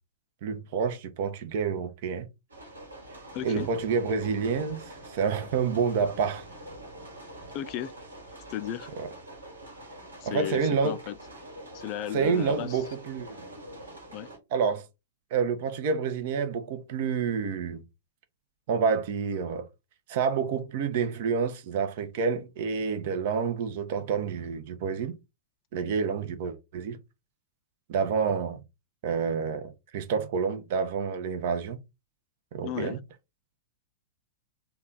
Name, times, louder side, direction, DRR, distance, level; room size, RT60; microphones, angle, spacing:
voice 1, 0.4-2.3 3.4-6.5 10.2-11.0 12.1-13.5 14.5-14.8 15.3-17.8 18.7-19.7 20.1-25.2 25.7-27.0 27.9-28.6 29.0-31.8 32.5-33.0, right 6 dB, 45° right, 0.7 m, -28 dB
sound 1, 2.5-14.4, right 1 dB, 75° right, 1.3 m, -45 dB
voice 2, 3.3-3.7 7.5-7.9 8.5-8.9 10.2-11.2 11.7-12.8 14.1-14.3 32.6-33.0, left 12 dB, 35° left, 0.3 m, -34 dB
3.3 x 2.3 x 3.8 m
figure-of-eight pair, 100°, 0 cm